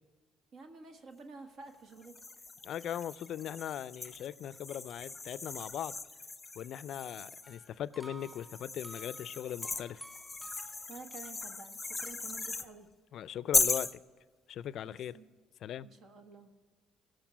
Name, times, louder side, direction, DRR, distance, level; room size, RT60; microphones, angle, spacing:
voice 1, 0.5-2.5 10.9-12.9 14.8-15.3 15.8-16.5, right 3 dB, 60° right, 1.4 m, -51 dB
sound 1, 2.0-7.6 8.2-12.7 13.5-14.0, left 3 dB, 15° left, 0.8 m, -37 dB
voice 2, 2.6-5.9 6.6-10.0 13.1-13.9 14.5-15.2 15.6-15.9, left 10 dB, 65° left, 0.4 m, -39 dB
sound 2, 7.4-11.2, equal, 10° right, 2.4 m, -53 dB
16.5 x 6.5 x 6.2 m
supercardioid pair, 70°, 0 cm